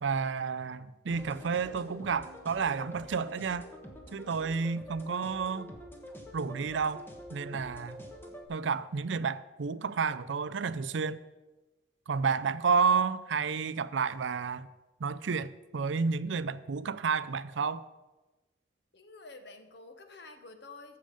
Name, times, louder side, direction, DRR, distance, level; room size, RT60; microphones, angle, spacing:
voice 1, 0.0-3.7 4.1-5.7 6.3-7.0 7.3-8.0 8.5-11.2 12.1-14.7 15.0-17.8, right 5 dB, 85° right, 0.5 m, -31 dB
sound 1, 1.1-8.5, equal, 10° left, 1.2 m, -47 dB
voice 2, 18.9-21.0, left 3 dB, 65° left, 1.1 m, -50 dB
15.0 x 6.6 x 5.2 m
head